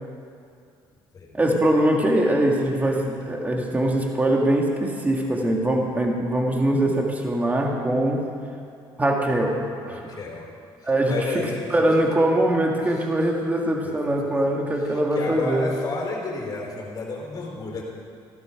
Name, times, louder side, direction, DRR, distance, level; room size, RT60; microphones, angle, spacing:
voice 1, 1.3-8.3 9.0-10.0 10.8-11.4 11.7-15.7, right 1 dB, 15° right, 0 dB, 1.8 m, -22 dB
voice 2, 9.9-10.5 10.8-12.0 12.8-13.1 13.8-14.0 14.7-17.8, left 3 dB, 40° left, -1 dB, 4.2 m, -32 dB
15.5 x 12.0 x 5.1 m, 2.4 s
cardioid pair, 110°, 9 cm